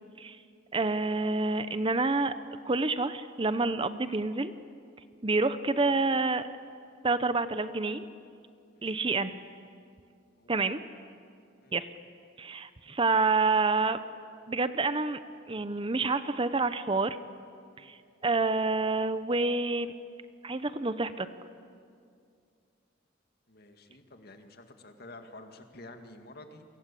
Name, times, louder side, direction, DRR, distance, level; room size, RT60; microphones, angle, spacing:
voice 1, 0.7-2.3 2.6-4.5 5.2-6.4 7.0-8.1 8.8-9.4 10.5-10.8 11.7-11.9 12.4-14.0 14.5-15.2 15.5-17.2 17.8-19.9 20.4-21.3, right 3 dB, 25° right, 12 dB, 0.8 m, -28 dB
voice 2, 23.5-26.7, left 2 dB, 55° left, 6 dB, 2.2 m, -50 dB
28.0 x 24.0 x 8.4 m, 2.3 s
head